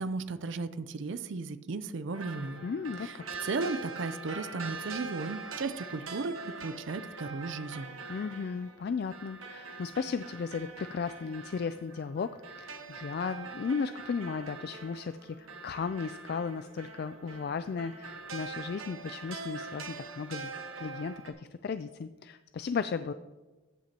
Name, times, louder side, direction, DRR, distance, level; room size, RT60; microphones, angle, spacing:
voice 1, 0.0-2.6 3.0-7.9, right 3 dB, 65° right, 12 dB, 0.5 m, -35 dB
sound 1, 2.1-21.3, right 4 dB, 80° right, 1.3 m, -43 dB
voice 2, 2.6-3.2 8.1-20.5 20.8-23.1, left 5 dB, 50° left, 11 dB, 0.3 m, -35 dB
14.0 x 8.9 x 2.9 m, 1.2 s
head